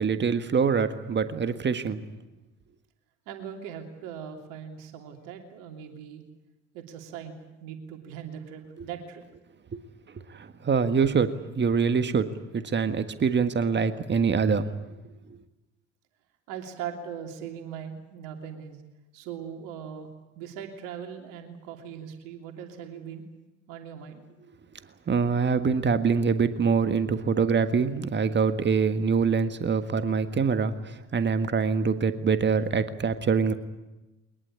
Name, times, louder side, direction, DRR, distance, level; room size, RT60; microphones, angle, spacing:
voice 1, 0.0-2.0 8.8-8.9 9.7-9.8 10.3-14.7 25.1-33.5, right 5 dB, 30° right, 10 dB, 1.7 m, -25 dB
voice 2, 3.3-6.2 6.7-9.2 16.5-18.8 19.1-20.1 20.4-23.2 23.7-24.2, right 8 dB, 60° right, 4 dB, 3.1 m, -40 dB
22.5 x 20.5 x 8.6 m, 1.0 s
figure-of-eight pair, 60°, 36 cm